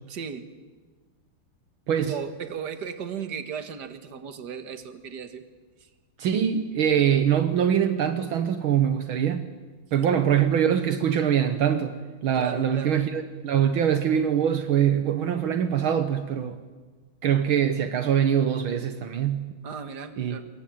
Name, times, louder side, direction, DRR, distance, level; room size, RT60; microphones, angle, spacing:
voice 1, 0.1-0.5 2.0-5.4 5.8-5.9 10.0-10.2 12.4-13.0 19.6-20.4, right 7 dB, 55° right, 9 dB, 2.2 m, -36 dB
voice 2, 6.2-9.5 9.9-11.9 12.2-16.6 17.2-19.5 20.2-20.4, right 9 dB, 75° right, 9 dB, 2.0 m, -23 dB
26.0 x 23.0 x 9.2 m, 1.4 s
omnidirectional pair, 2.3 m